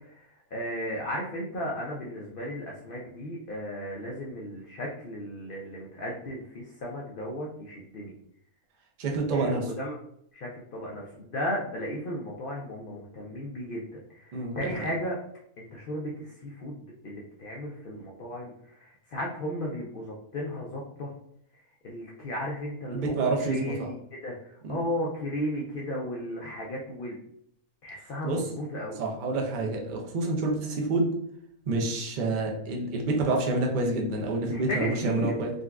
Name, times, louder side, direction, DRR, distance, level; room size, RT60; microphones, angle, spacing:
voice 1, 0.0-8.1 9.3-10.0 10.3-15.2 15.6-21.1 21.8-27.2 27.8-28.9 34.5-35.3, equal, 75° left, -3 dB, 0.5 m, -35 dB
voice 2, 9.0-9.6 14.3-14.9 22.9-23.9 24.6-24.8 28.2-28.4 29.0-31.1 31.7-35.5, right 2 dB, 55° right, 0 dB, 0.5 m, -28 dB
3.8 x 2.2 x 2.3 m, 0.69 s
omnidirectional pair, 1.5 m